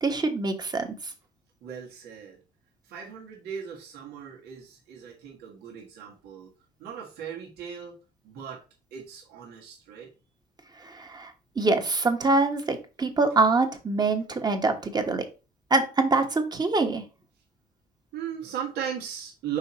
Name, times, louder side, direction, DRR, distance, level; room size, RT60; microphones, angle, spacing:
voice 1, 0.0-0.9 10.8-11.3 11.6-15.2 15.7-17.0, right 3 dB, 25° right, 5 dB, 1.3 m, -24 dB
voice 2, 1.6-2.4 2.9-6.5 6.8-8.0 8.2-8.6 8.9-10.1 18.1-19.6, right 8 dB, 80° right, -1 dB, 1.5 m, -37 dB
5.6 x 4.4 x 4.2 m, 0.32 s
cardioid pair, 110°, 17 cm